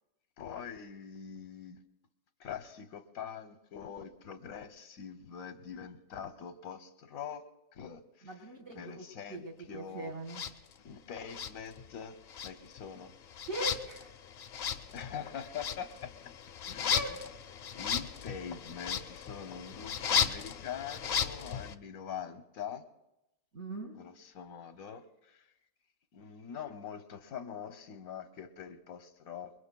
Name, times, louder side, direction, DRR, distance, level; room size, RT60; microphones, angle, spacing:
voice 1, 0.4-1.8 2.4-7.4 7.7-8.5 8.7-10.1 10.8-13.1 14.9-16.1 16.6-17.2 17.7-22.8 23.9-25.5 26.1-29.5, left 7 dB, 60° left, 6 dB, 1.0 m, -44 dB
voice 2, 8.2-9.0 9.3-10.4 13.5-14.1 16.9-17.2 23.5-24.0, right 2 dB, 40° right, -1 dB, 2.2 m, -40 dB
sound 1, 10.3-10.5 11.3-12.0 12.3-21.7, left 7 dB, 80° left, 0.5 m, -35 dB
27.5 x 22.0 x 2.2 m, 0.93 s
omnidirectional pair, 1.9 m